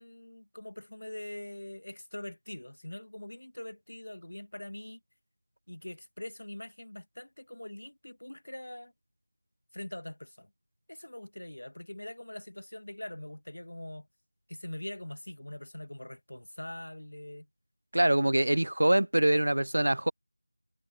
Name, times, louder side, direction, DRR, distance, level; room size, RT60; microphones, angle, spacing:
voice 1, 0.0-5.0 5.7-8.9 9.7-10.5 10.9-14.1 14.5-17.5, left 1 dB, 75° left, 1.3 m, -43 dB
voice 2, 17.9-20.1, right 1 dB, 70° right, 0.5 m, -24 dB
figure-of-eight pair, 175°, 0 cm